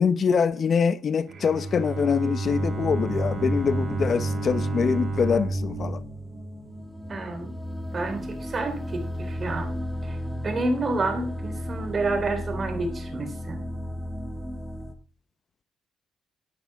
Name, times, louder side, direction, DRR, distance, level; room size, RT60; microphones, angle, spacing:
voice 1, 0.0-6.0, left 6 dB, 50° left, 0.8 m, -24 dB
Bowed string instrument, 1.3-7.2, right 3 dB, 55° right, 3.4 m, -31 dB
sound 1, 2.4-14.9, equal, 5° right, 1.7 m, -34 dB
voice 2, 7.1-7.5 7.9-9.7 10.0-10.2 10.4-13.6, right 2 dB, 40° right, 3.3 m, -29 dB
12.0 x 8.8 x 3.5 m
cardioid pair, 90°, 0 cm